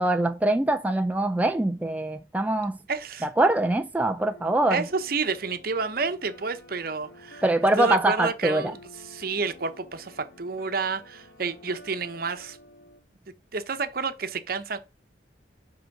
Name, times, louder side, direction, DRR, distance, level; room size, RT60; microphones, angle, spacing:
voice 1, 0.0-2.8 3.2-4.9 7.4-8.7, right 2 dB, 10° right, 0.3 m, -23 dB
voice 2, 2.9-3.3 4.7-7.4 7.8-8.8 9.1-12.6 13.5-14.8, right 4 dB, 50° right, 0.9 m, -29 dB
sound 1, 4.3-13.0, left 1 dB, 80° left, 2.1 m, -50 dB
7.8 x 3.8 x 5.8 m
head